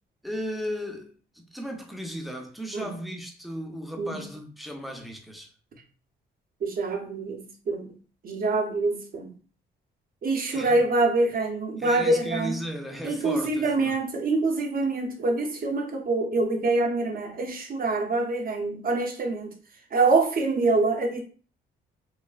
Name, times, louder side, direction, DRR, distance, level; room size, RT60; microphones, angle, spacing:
voice 1, 0.2-5.5 10.5-10.8 11.8-13.9, equal, ahead, 0.5 m, -35 dB
voice 2, 6.6-7.9 8.2-9.3 10.2-12.6 13.0-19.5 19.9-21.2, right 3 dB, 45° right, 0.7 m, -25 dB
3.0 x 2.1 x 2.3 m
cardioid pair, 90°, 20 cm